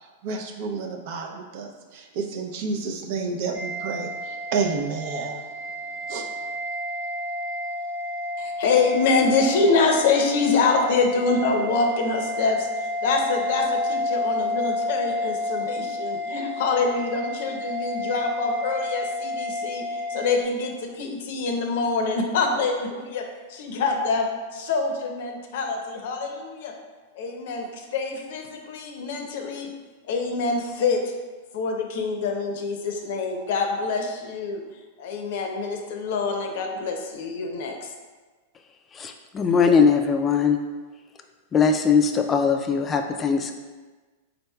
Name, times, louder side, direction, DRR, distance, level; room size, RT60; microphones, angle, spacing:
voice 1, 0.2-5.4 6.1-6.2, right 4 dB, 55° right, 3 dB, 0.5 m, -30 dB
sound 1, 3.5-20.4, left 1 dB, 90° right, 1.0 m, -30 dB
voice 2, 8.4-24.3 24.5-26.7 27.1-29.7 30.1-31.0 31.5-34.6 35.0-37.9, left 4 dB, 65° left, 3 dB, 0.6 m, -25 dB
voice 3, 38.9-40.6 41.5-43.5, left 6 dB, 20° left, 5 dB, 0.3 m, -20 dB
4.3 x 3.9 x 2.3 m, 1.3 s
hypercardioid pair, 140°, 0 cm